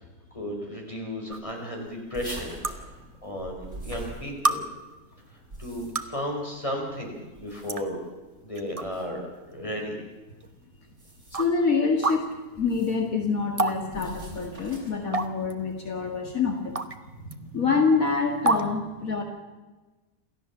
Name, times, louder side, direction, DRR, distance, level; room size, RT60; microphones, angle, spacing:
voice 1, 0.3-4.6 5.3-8.0 8.4-10.0, equal, 20° left, 1 dB, 5.0 m, -34 dB
sound 1, 1.3-1.4 2.6-2.7 3.7-3.8 4.4-4.6 5.7-6.2 7.2-7.3 7.7-7.8 8.6-8.8 9.3-9.4 10.4-10.5 11.3-11.5 12.0-12.2 13.6-13.8 14.0-14.1 15.1-15.5 16.8-17.0 17.3-17.4 18.5-18.6, right 3 dB, 25° right, 1.1 m, -26 dB
sound 2, 2.1-4.8 5.3-6.2 7.3-8.0 8.8-9.1 10.9-11.6 12.6-13.1 13.9-15.1, right 1 dB, 50° right, 6.3 m, -43 dB
voice 2, 11.3-12.3 12.6-16.7 17.2-19.2, left 4 dB, 70° left, 3 dB, 2.4 m, -26 dB
28.0 x 14.5 x 7.2 m, 1.2 s
omnidirectional pair, 1.5 m